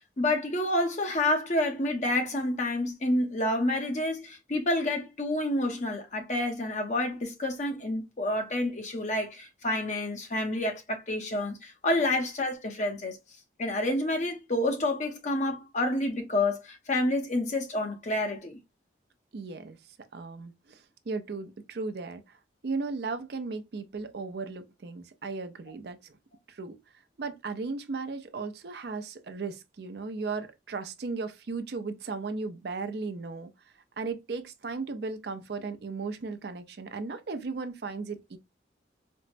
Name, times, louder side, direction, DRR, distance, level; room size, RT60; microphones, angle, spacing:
voice 1, 0.2-13.2 13.6-18.6, left 1 dB, 40° left, 0.7 m, -29 dB
voice 2, 19.3-19.8 20.1-26.2 26.5-26.8 27.2-33.5 34.0-38.4, right 4 dB, 60° right, 0.5 m, -36 dB
4.4 x 2.0 x 2.5 m
head